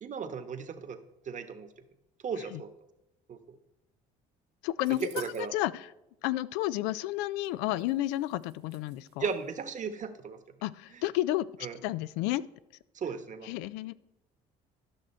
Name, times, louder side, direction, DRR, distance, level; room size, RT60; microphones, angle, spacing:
voice 1, 0.0-1.0 1.3-1.7 2.2-2.7 3.3-3.4 5.2-5.6 9.2-10.4 10.9-11.0 11.6-11.8 12.9-13.5, right 6 dB, 45° right, 9 dB, 1.1 m, -36 dB
voice 2, 4.6-5.9 6.2-9.3 10.6-11.5 11.8-12.4 13.4-13.9, left 16 dB, 85° left, 17 dB, 0.4 m, -31 dB
sound 1, 4.8-5.5 7.4-7.5 7.8-9.5, right 11 dB, 85° right, 1.2 m, -53 dB
12.5 x 6.2 x 4.3 m, 0.89 s
supercardioid pair, 75°, 18 cm